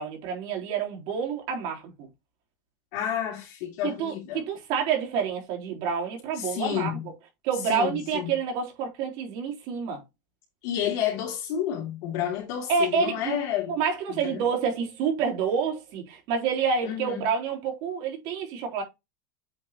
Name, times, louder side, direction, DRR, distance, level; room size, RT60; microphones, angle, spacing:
voice 1, 0.0-2.1 3.8-7.0 7.4-10.0 12.7-13.3 13.7-18.8, right 6 dB, 50° right, 3.6 m, -28 dB
voice 2, 2.9-4.4 6.4-7.1 7.7-8.3 10.6-13.7 14.1-14.4 16.8-17.3, left 10 dB, 60° left, 3.0 m, -30 dB
8.2 x 4.9 x 3.0 m
supercardioid pair, 145°, 10 cm